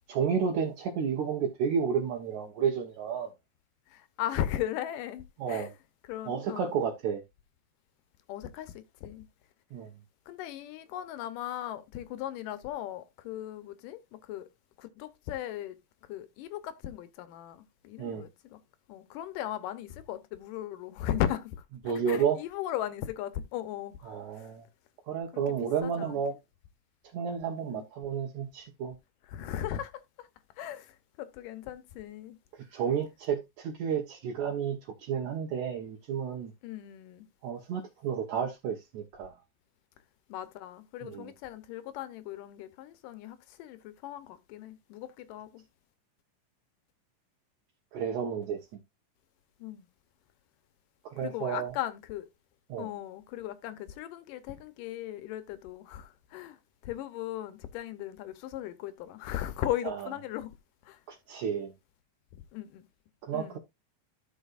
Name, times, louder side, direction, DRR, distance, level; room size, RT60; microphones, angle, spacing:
voice 1, 0.1-3.3 5.4-5.7 6.3-7.2 9.7-9.9 18.0-18.2 21.9-22.4 24.0-24.7 25.1-26.3 27.1-29.0 32.7-34.8 35.1-36.5 37.4-39.4 41.0-41.3 47.9-48.6 51.1-51.7 52.7-52.9 59.8-60.1 61.1-61.7 63.2-63.6, right 7 dB, 70° right, 2.3 m, -31 dB
voice 2, 3.9-5.7 6.1-6.7 8.3-9.3 10.3-14.5 14.8-15.8 16.1-18.6 18.9-24.5 25.3-26.2 27.6-27.8 29.3-29.9 30.2-30.3 30.6-32.4 36.6-37.2 40.3-45.6 49.6-49.9 51.2-52.3 52.8-56.6 56.8-60.5 60.9-61.0 62.5-62.8 63.3-63.6, left 12 dB, 85° left, 2.5 m, -37 dB
12.5 x 6.7 x 2.5 m
omnidirectional pair, 3.7 m